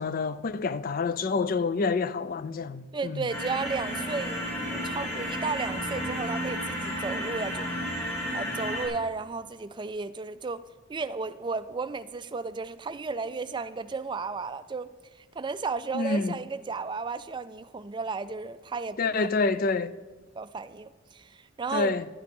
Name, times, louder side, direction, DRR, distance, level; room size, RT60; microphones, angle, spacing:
voice 1, 0.0-3.3 15.9-16.4 19.0-19.9 21.7-22.0, left 4 dB, 45° left, 0.4 m, -27 dB
voice 2, 2.9-7.7 8.3-10.6 10.9-14.9 15.4-19.3 20.4-22.0, right 4 dB, 25° right, 0.4 m, -34 dB
sound 1, 3.3-8.9, equal, 15° left, 3.2 m, -32 dB
10.5 x 9.4 x 5.4 m
head